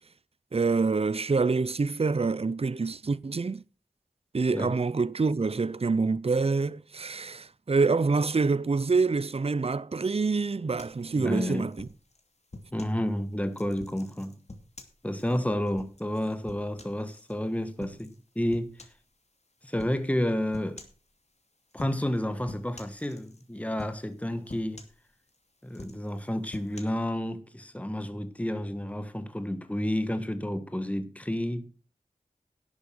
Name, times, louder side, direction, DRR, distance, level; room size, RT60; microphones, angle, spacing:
voice 1, 0.5-3.6 4.3-11.9, right 4 dB, 40° right, 0.6 m, -26 dB
sound 1, 10.8-13.0 13.5-17.3 17.8-18.2 18.5-19.1 19.8-20.0 20.5-21.0 21.7-22.2 22.5-23.5 23.8-24.2 24.5-25.4 25.7-26.8, left 2 dB, 50° left, 2.6 m, -46 dB
voice 2, 11.2-11.7 12.7-14.4 15.0-18.7 19.6-20.8 21.7-24.8 25.6-31.7, left 1 dB, 10° left, 1.4 m, -30 dB
11.5 x 8.2 x 6.3 m
wide cardioid pair, 50°, 15 cm